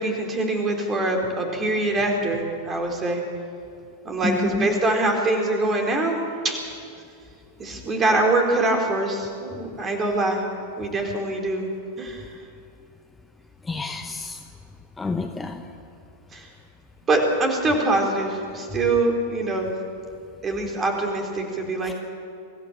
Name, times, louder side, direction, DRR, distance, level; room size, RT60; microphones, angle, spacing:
voice 1, 0.0-3.2 4.0-6.6 7.6-10.4 10.8-11.7 12.0-12.3 16.3-16.5 17.1-19.7 20.4-21.9, right 2 dB, 20° right, 2 dB, 3.9 m, -24 dB
voice 2, 4.2-4.8 13.7-14.4 15.0-15.6 21.9-22.0, left 4 dB, 10° left, 5 dB, 1.1 m, -28 dB
25.5 x 14.5 x 7.3 m, 2.4 s
figure-of-eight pair, 90°, 0 cm